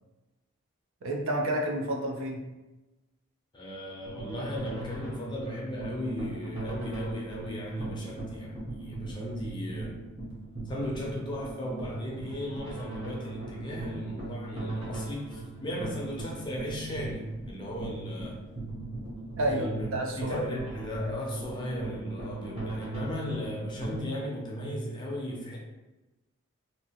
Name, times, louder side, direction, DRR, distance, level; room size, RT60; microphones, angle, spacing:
voice 1, 1.0-2.4 19.4-20.5, right 1 dB, 65° right, 1 dB, 0.5 m, -30 dB
voice 2, 3.5-10.0 10.7-18.4 19.5-25.6, equal, 20° left, -2 dB, 0.5 m, -36 dB
sound 1, 4.0-24.0, right 2 dB, 25° right, 0.8 m, -39 dB
2.8 x 2.4 x 2.8 m, 1.1 s
head